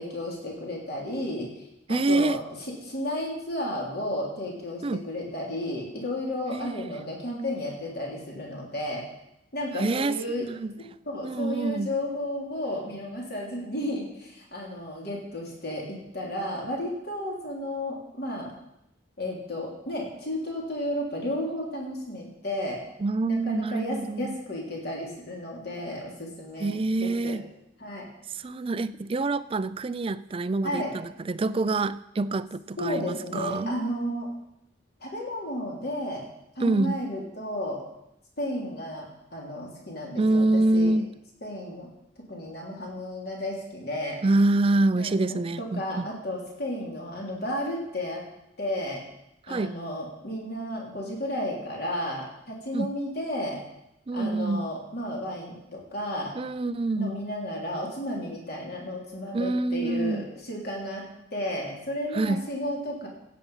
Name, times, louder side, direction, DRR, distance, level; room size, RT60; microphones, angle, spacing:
voice 1, 0.0-1.5 1.9-2.4 2.8-9.0 9.5-10.5 11.0-18.5 19.2-22.8 23.3-27.4 27.8-28.1 30.6-30.9 32.8-34.3 35.0-36.2 36.5-37.8 38.4-40.9 41.4-41.9 42.3-44.2 44.9-48.2 48.6-49.0 49.5-53.6 54.1-56.3 57.0-63.1, left 1 dB, 55° left, -2 dB, 3.3 m, -33 dB
voice 2, 1.9-2.4 4.8-5.0 6.5-6.9 9.7-10.7 11.2-11.9 23.0-24.4 26.6-27.5 28.3-33.8 36.6-37.0 40.2-41.1 44.2-46.1 49.5-49.8 52.7-52.9 54.1-54.7 56.4-57.2 59.3-60.3 62.1-62.4, right 2 dB, 30° right, 15 dB, 0.4 m, -26 dB
16.0 x 8.4 x 5.6 m, 0.83 s
head